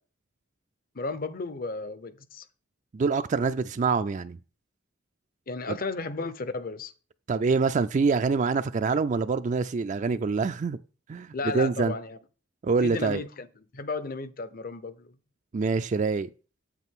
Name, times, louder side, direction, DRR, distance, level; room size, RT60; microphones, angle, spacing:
voice 1, 0.9-2.5 5.5-6.9 11.3-12.2 12.8-13.5 13.7-15.1, left 3 dB, 50° left, 0.7 m, -34 dB
voice 2, 2.9-4.4 5.7-5.8 7.3-10.8 11.1-11.9 12.6-13.2 15.5-16.3, right 4 dB, 40° right, 0.4 m, -25 dB
8.2 x 8.2 x 3.6 m
head